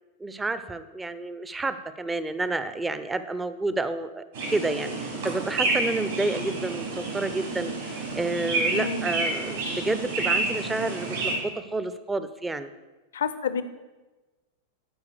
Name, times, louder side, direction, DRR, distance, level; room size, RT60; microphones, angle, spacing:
voice 1, 0.2-12.7, right 2 dB, 10° right, 12 dB, 0.6 m, -30 dB
sound 1, 4.3-11.3, right 3 dB, 65° right, 3.5 m, -29 dB
voice 2, 8.7-9.1 13.1-13.6, left 6 dB, 65° left, 12 dB, 0.6 m, -29 dB
11.5 x 4.9 x 6.7 m, 1.2 s
figure-of-eight pair, 90°, 0 cm